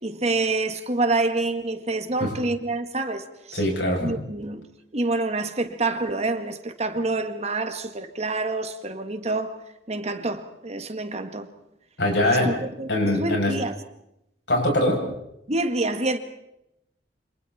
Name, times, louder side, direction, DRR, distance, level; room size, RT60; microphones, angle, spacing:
voice 1, 0.0-3.6 4.0-4.7 4.9-9.6 9.9-11.5 12.2-13.8 15.5-16.2, right 2 dB, 40° right, 1.9 m, -27 dB
voice 2, 3.5-4.1 12.0-12.5 12.9-13.5 14.5-15.0, left 1 dB, 75° left, 7.9 m, -22 dB
29.5 x 26.5 x 4.4 m
head